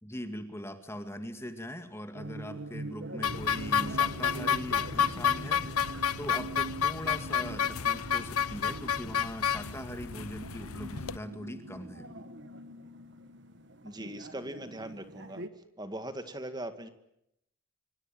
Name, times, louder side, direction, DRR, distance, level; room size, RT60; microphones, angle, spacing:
voice 1, 0.0-12.2, equal, 10° left, 7 dB, 2.1 m, -41 dB
sound 1, 2.1-15.5, right 2 dB, 55° right, 1.8 m, -43 dB
sound 2, 3.2-11.2, left 8 dB, 85° left, 1.0 m, -30 dB
voice 2, 13.8-15.4 15.8-16.9, right 1 dB, 20° right, 9 dB, 2.0 m, -40 dB
26.0 x 24.5 x 9.0 m, 0.81 s
head